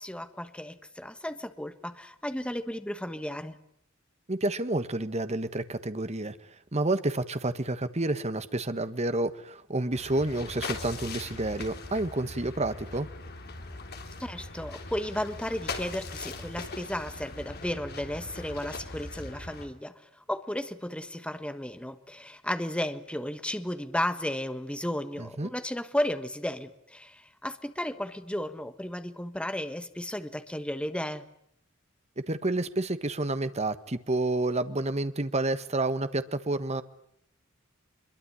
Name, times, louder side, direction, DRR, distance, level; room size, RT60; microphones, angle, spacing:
voice 1, 0.0-3.6 14.2-31.2, left 1 dB, 5° left, 10 dB, 1.4 m, -34 dB
voice 2, 4.3-6.4 6.7-13.1 25.2-25.5 32.3-36.8, right 2 dB, 30° right, 12 dB, 1.4 m, -29 dB
sound 1, 9.9-19.7, left 3 dB, 50° left, 3.5 m, -40 dB
25.0 x 22.5 x 10.0 m, 0.69 s
head